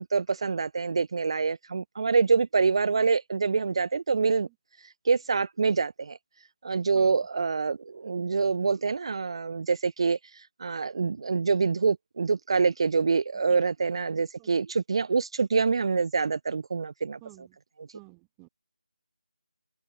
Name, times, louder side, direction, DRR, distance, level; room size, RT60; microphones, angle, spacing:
voice 1, 0.0-4.5 5.1-6.2 6.6-17.5 17.8-17.9, right 5 dB, 40° right, 0.6 m, -26 dB
voice 2, 17.9-18.5, right 40 dB or more, 10° right, 0.8 m, -50 dB
figure-of-eight pair, 165°, 4 cm